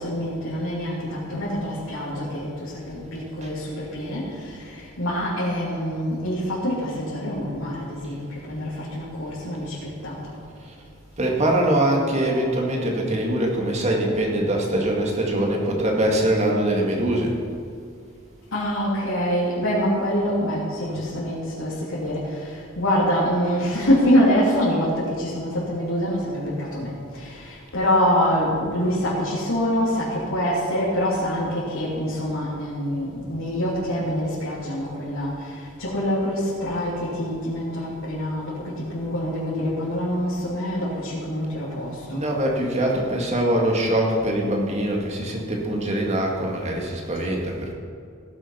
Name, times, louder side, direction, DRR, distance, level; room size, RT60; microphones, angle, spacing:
voice 1, 0.0-10.4 18.5-42.3, equal, 90° left, -9 dB, 3.4 m, -25 dB
voice 2, 11.2-17.3 42.1-47.7, right 1 dB, 35° right, -1 dB, 2.0 m, -23 dB
17.0 x 7.6 x 5.7 m, 2.3 s
head